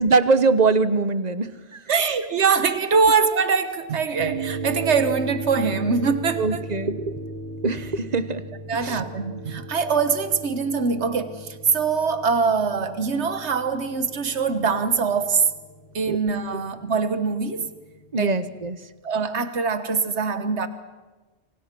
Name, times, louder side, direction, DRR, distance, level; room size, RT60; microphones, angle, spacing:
voice 1, 0.0-1.8 6.4-7.2 7.6-8.4 8.8-9.0 16.1-16.2 18.1-18.8, right 4 dB, 40° right, 1.1 m, -22 dB
voice 2, 1.9-6.6 8.7-15.5 15.9-17.7 18.2-18.4 19.0-20.7, right 5 dB, 85° right, 1.6 m, -23 dB
sound 1, 4.2-18.7, right 2 dB, 60° right, 2.7 m, -37 dB
27.5 x 26.0 x 6.1 m
omnidirectional pair, 1.1 m